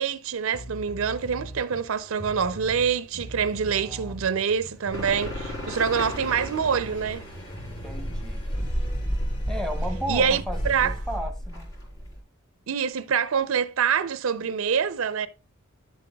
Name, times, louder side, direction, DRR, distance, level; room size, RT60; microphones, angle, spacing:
voice 1, 0.0-7.2 10.1-10.9 12.7-15.3, right 7 dB, 65° right, 0.5 m, -26 dB
sound 1, 0.5-1.7 2.1-4.6 4.8-11.2, equal, 30° left, 3.6 m, -41 dB
sound 2, 1.1-11.2, equal, 60° left, 3.8 m, -47 dB
voice 2, 3.7-4.2 7.8-8.5 9.5-11.7, equal, 5° left, 0.8 m, -34 dB
sound 3, 4.9-12.2, equal, 75° left, 4.3 m, -32 dB
10.5 x 7.7 x 2.3 m
head